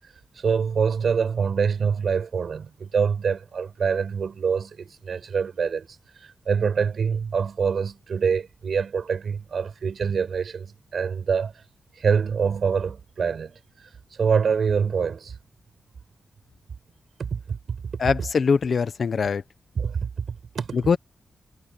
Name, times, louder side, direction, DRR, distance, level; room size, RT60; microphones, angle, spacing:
voice 1, 0.4-5.9 6.1-11.6 12.0-13.6 14.1-15.4 17.2-18.0 19.8-20.8, right 6 dB, 55° right, 5.3 m, -25 dB
voice 2, 18.0-19.4 20.7-21.0, left 5 dB, 50° left, 0.9 m, -22 dB
wide cardioid pair, 175°, 0 cm